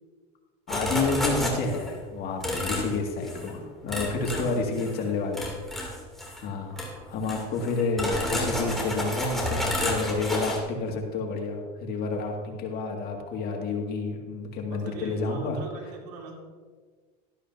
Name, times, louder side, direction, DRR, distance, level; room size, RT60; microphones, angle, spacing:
voice 1, 0.7-5.4 6.4-15.6, left 3 dB, 50° left, 1 dB, 2.2 m, -30 dB
sound 1, 0.7-1.9 2.4-2.9 3.2-3.5 3.9-5.0 5.3-6.4 6.8-6.9 7.2-10.6, left 1 dB, ahead, 2.8 m, -30 dB
voice 2, 4.1-4.9 6.7-7.2 14.7-16.3, right 4 dB, 75° right, 0 dB, 2.6 m, -41 dB
13.0 x 11.5 x 2.8 m, 1.5 s
supercardioid pair, 105°, 20 cm